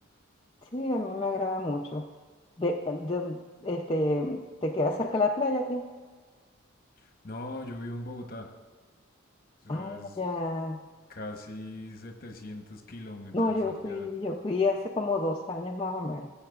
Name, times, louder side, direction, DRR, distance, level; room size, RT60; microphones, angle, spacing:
voice 1, 0.7-2.1 2.6-5.9 9.7-10.8 13.3-16.3, left 2 dB, 25° left, -1 dB, 0.4 m, -29 dB
voice 2, 7.0-8.5 9.6-10.2 11.1-14.1, left 1 dB, 45° left, 4 dB, 1.0 m, -41 dB
16.0 x 8.6 x 2.4 m, 1.5 s
head